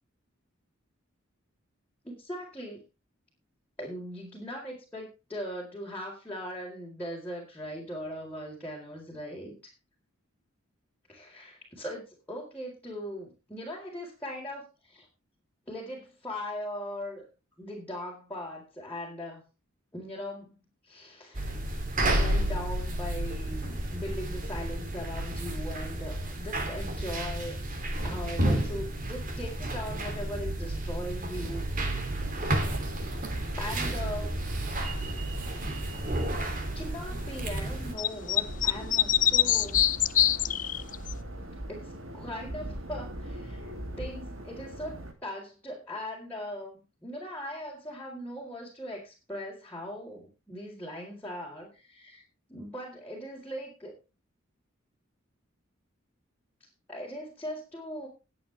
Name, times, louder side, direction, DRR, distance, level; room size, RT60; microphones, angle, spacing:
voice 1, 2.0-2.8 3.8-9.5 11.1-15.1 15.7-17.2 17.6-19.4 19.9-20.6 20.8-21.6 22.0-27.6 28.0-32.3 32.9-33.2 33.5-34.4 36.7-39.9 41.7-43.7 44.0-45.0 45.2-52.2 52.5-53.9 56.9-58.1, equal, 10° left, -6 dB, 4.2 m, -39 dB
sound 1, 21.3-37.9, right 1 dB, 45° right, 3.1 m, -31 dB
sound 2, 32.2-45.1, right 1 dB, 85° right, 3.0 m, -41 dB
sound 3, 38.0-41.1, left 11 dB, 40° left, 0.6 m, -24 dB
20.0 x 8.5 x 3.5 m, 0.30 s
head